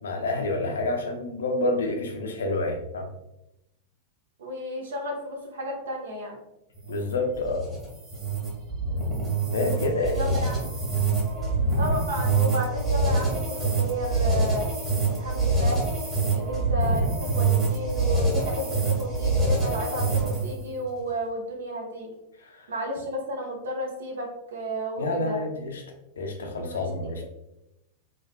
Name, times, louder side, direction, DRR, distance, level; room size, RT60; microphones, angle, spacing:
voice 1, 0.0-3.1 6.9-7.6 9.5-10.4 22.4-22.7 25.0-25.8 26.2-27.2, left 2 dB, 65° left, 4 dB, 0.4 m, -28 dB
voice 2, 4.4-6.4 8.9-9.2 10.1-10.7 11.8-14.7 15.1-15.8 16.3-22.1 22.7-25.4 26.6-27.2, equal, 65° right, 2 dB, 0.6 m, -32 dB
sound 1, 6.7-20.6, right 3 dB, 15° right, 1.4 m, -25 dB
3.2 x 2.3 x 2.2 m, 0.91 s
figure-of-eight pair, 90°, 0 cm